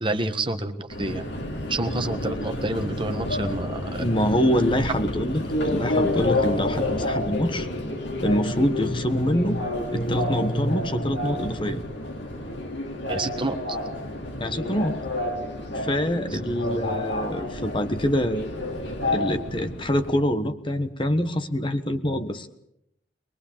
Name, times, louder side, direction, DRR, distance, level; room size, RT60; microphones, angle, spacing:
voice 1, 0.0-1.3 1.7-4.1 13.1-13.6 16.3-16.4, right 2 dB, 25° right, 7 dB, 1.5 m, -28 dB
Subway metro underground, 0.9-20.1, left 1 dB, 65° left, 3.8 m, -30 dB
voice 2, 4.0-7.7 8.2-9.6 9.9-11.8 14.4-15.0 15.7-18.5 19.1-22.5, equal, 25° left, 9 dB, 1.3 m, -25 dB
23.0 x 21.5 x 7.3 m, 0.78 s
head